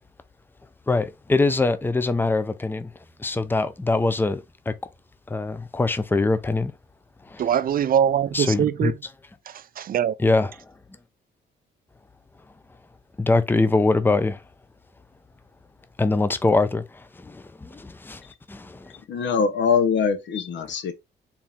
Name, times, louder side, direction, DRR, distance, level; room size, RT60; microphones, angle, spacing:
voice 1, 0.9-2.9 3.2-4.7 5.3-6.7 7.3-7.4 8.3-8.9 10.2-10.7 13.2-14.4 16.0-18.9, left 3 dB, 10° left, 0.5 m, -23 dB
voice 2, 7.4-8.9 9.5-10.1, right 9 dB, 45° right, 0.4 m, -23 dB
voice 3, 19.1-20.9, left 6 dB, 70° left, 1.0 m, -22 dB
4.5 x 2.8 x 3.6 m
cardioid pair, 90°, 20 cm